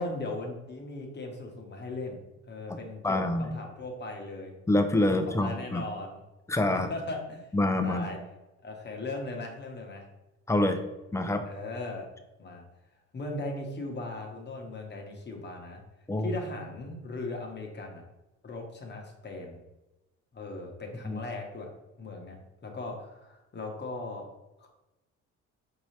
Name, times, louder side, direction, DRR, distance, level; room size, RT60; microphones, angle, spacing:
voice 1, 0.0-2.2 2.5-4.5 5.1-6.2 6.7-7.5 7.8-8.2 8.6-10.0 11.5-12.1 12.4-12.6 13.1-15.8 16.2-18.0 18.4-19.6 20.3-21.7 22.0-22.4 22.6-24.3 24.6-24.7, left 2 dB, 35° left, 1 dB, 1.0 m, -38 dB
voice 2, 3.0-3.6 4.7-5.8 6.5-6.9 7.5-8.1 10.5-10.8 11.1-11.4 16.1-16.3 21.0-21.2, left 1 dB, 10° left, 6 dB, 0.4 m, -26 dB
4.6 x 2.8 x 3.2 m, 1.0 s
cardioid pair, 90°, 30 cm